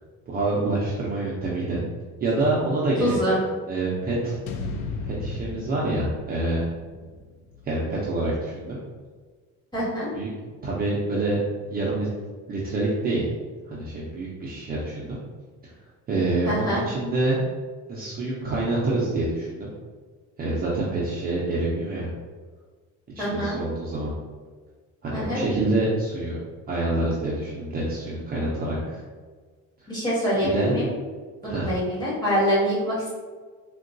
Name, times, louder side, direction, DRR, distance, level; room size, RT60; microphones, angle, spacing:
voice 1, 0.3-1.8 2.2-3.4 3.7-4.4 5.0-6.7 7.6-8.8 10.1-10.3 10.6-11.4 11.7-12.1 12.5-13.2 13.7-15.2 15.6-15.7 16.1-17.4 17.9-19.7 20.4-22.1 23.2-24.1 25.0-26.4 26.7-29.0 30.4-30.8 31.4-31.7, right 2 dB, 30° right, -6 dB, 0.4 m, -26 dB
voice 2, 3.0-3.4 9.7-10.1 16.4-16.8 23.2-23.6 25.1-25.4 29.9-30.9 31.4-33.1, equal, 15° left, -8 dB, 1.2 m, -25 dB
sound 1, 4.5-8.7, left 3 dB, 85° left, 0.5 m, -36 dB
3.7 x 2.2 x 2.5 m, 1.5 s
cardioid pair, 150°, 31 cm